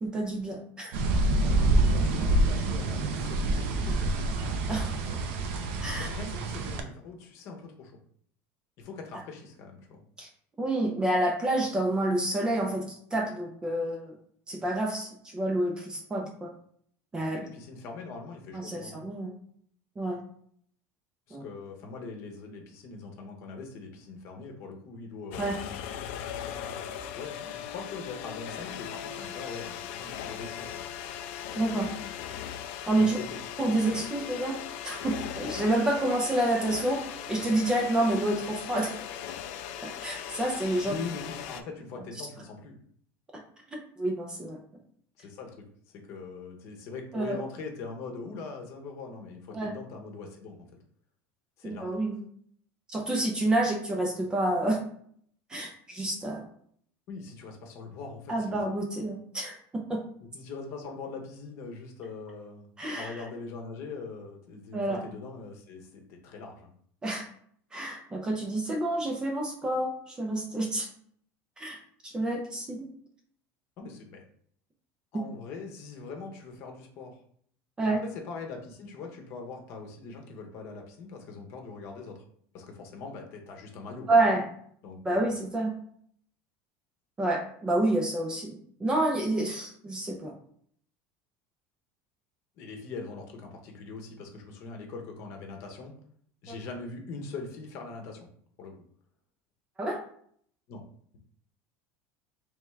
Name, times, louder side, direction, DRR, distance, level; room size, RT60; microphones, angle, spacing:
voice 1, 0.0-1.0 4.7-4.9 5.8-6.1 10.2-10.3 10.6-14.1 14.5-16.5 17.1-17.4 18.5-19.3 20.0-20.2 21.3-21.4 25.4-25.6 31.6-31.9 32.9-33.2 33.6-34.6 34.8-37.0 37.3-38.9 39.8-41.0 43.7-44.6 47.1-47.4 49.5-49.7 51.6-52.2 52.9-54.8 55.5-56.4 58.3-60.0 62.8-63.2 64.7-65.0 67.0-67.2 67.7-70.9 71.6-72.9 77.8-78.0 84.1-84.4 85.0-85.7 87.2-90.3 96.5-96.6 99.8-100.0, right 1 dB, 10° right, 2 dB, 0.5 m, -28 dB
sound 1, 0.9-6.8, right 2 dB, 65° right, 0.6 m, -26 dB
voice 2, 1.4-4.1 5.9-8.0 8.8-10.0 17.3-19.0 21.3-25.6 27.1-30.8 33.0-33.4 40.8-42.8 45.2-45.6 46.1-50.7 51.6-52.0 57.1-58.6 60.3-62.7 62.9-66.7 73.8-74.2 75.1-77.2 77.8-82.2 82.5-84.1 84.8-85.3 92.6-95.9 96.4-98.3 98.6-98.7 100.7-100.8, left 4 dB, 45° left, 2 dB, 0.9 m, -42 dB
sound 2, 25.3-41.6, left 9 dB, 75° left, 0.4 m, -39 dB
3.5 x 3.4 x 3.2 m, 0.62 s
cardioid pair, 175°, 7 cm